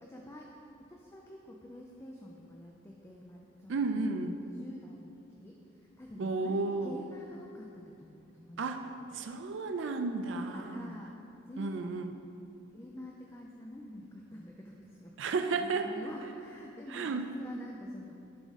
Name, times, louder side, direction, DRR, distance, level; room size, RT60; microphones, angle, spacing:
voice 1, 0.0-8.7 9.0-9.2 10.3-11.2 11.5-12.0 12.7-18.1, left 1 dB, 15° left, -1 dB, 0.3 m, -48 dB
voice 2, 3.7-4.3 6.2-7.0 8.6-8.8 9.1-10.8 11.6-12.1 15.2-15.9 16.9-17.2, right 3 dB, 65° right, 7 dB, 0.4 m, -32 dB
10.5 x 3.7 x 4.0 m, 2.7 s
head